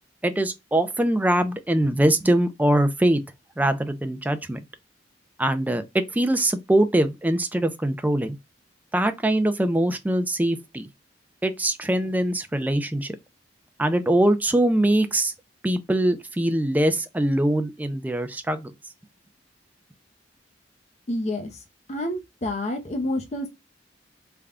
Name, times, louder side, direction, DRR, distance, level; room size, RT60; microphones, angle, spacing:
voice 1, 0.2-3.2 3.6-4.6 5.4-8.4 8.9-10.9 11.4-13.2 13.8-15.3 15.6-18.7, right 1 dB, 10° right, 0.4 m, -22 dB
voice 2, 21.1-21.5 21.9-23.5, left 1 dB, 35° left, 0.6 m, -28 dB
3.4 x 2.2 x 3.6 m
head